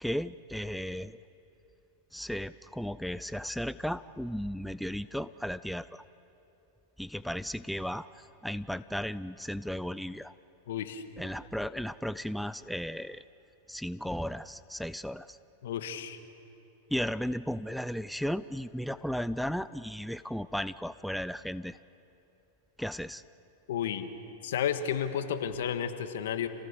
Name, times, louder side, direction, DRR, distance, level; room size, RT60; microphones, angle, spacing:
voice 1, 0.0-1.2 2.1-6.0 7.0-8.1 8.4-10.3 11.2-13.2 13.7-15.4 16.9-21.8 22.8-23.2, equal, ahead, 15 dB, 0.4 m, -35 dB
voice 2, 10.7-11.0 15.6-16.2 23.7-24.1 24.4-26.5, left 9 dB, 75° left, 9 dB, 1.6 m, -32 dB
28.0 x 18.0 x 6.9 m, 3.0 s
hypercardioid pair, 115°, 0 cm